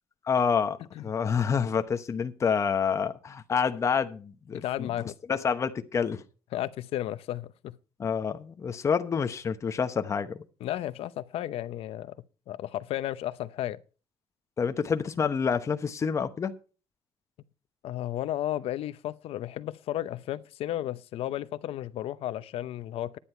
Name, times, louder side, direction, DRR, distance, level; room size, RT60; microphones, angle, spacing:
voice 1, 0.3-0.8 1.0-4.9 5.3-6.2 8.0-10.4 14.6-16.5, left 6 dB, 30° left, 0.9 m, -28 dB
voice 2, 4.5-5.1 6.5-7.8 10.6-12.1 12.5-13.8 17.8-23.2, left 13 dB, 75° left, 0.7 m, -33 dB
11.5 x 10.0 x 4.4 m
cardioid pair, 160°, 10 cm